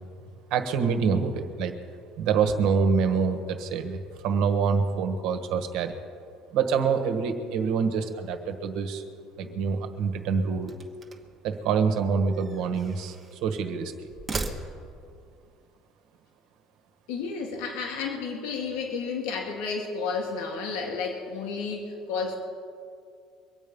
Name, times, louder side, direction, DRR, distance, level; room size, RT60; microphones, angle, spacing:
voice 1, 0.5-1.8 2.2-5.9 6.5-9.0 9.4-10.7 11.4-13.1 13.4-13.9, right 5 dB, 60° right, 7 dB, 1.4 m, -26 dB
sound 1, 10.6-11.4 12.3-13.4 14.1-15.1, right 3 dB, 20° right, 1.1 m, -37 dB
voice 2, 17.1-22.4, left 5 dB, 90° left, 1 dB, 2.0 m, -32 dB
23.5 x 8.6 x 5.4 m, 2.3 s
cardioid pair, 160°, 0 cm